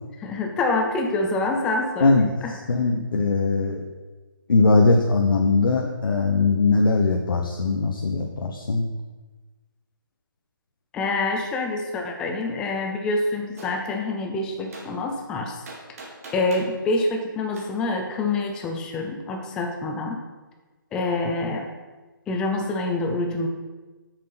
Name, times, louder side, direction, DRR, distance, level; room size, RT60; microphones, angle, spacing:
voice 1, 0.2-2.2 2.4-2.5 10.9-15.6 16.3-20.2 20.9-21.7 22.3-23.5, left 2 dB, 5° left, 3 dB, 0.5 m, -26 dB
voice 2, 2.0-2.3 2.7-3.8 4.5-8.9, left 3 dB, 75° left, 2 dB, 1.1 m, -20 dB
Gunshot gunfire, 13.6-13.8 14.7-14.9 15.7-16.7 17.6-17.7, right 2 dB, 40° right, 1.9 m, -40 dB
8.0 x 6.6 x 5.8 m, 1.3 s
hypercardioid pair, 165°, 12 cm